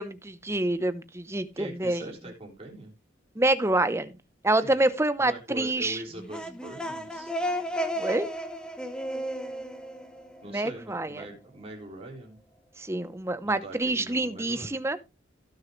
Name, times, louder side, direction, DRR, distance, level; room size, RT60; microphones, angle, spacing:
voice 1, 0.0-2.1 3.4-4.1 4.4-6.0 8.0-8.3 10.4-11.3 12.8-15.0, right 2 dB, 15° right, 0.8 m, -27 dB
voice 2, 1.5-2.9 4.6-4.9 5.2-7.3 10.4-12.4 13.4-14.8, right 1 dB, 30° right, 3.9 m, -42 dB
sound 1, 6.1-10.8, equal, 5° left, 1.1 m, -33 dB
16.5 x 6.6 x 3.1 m
head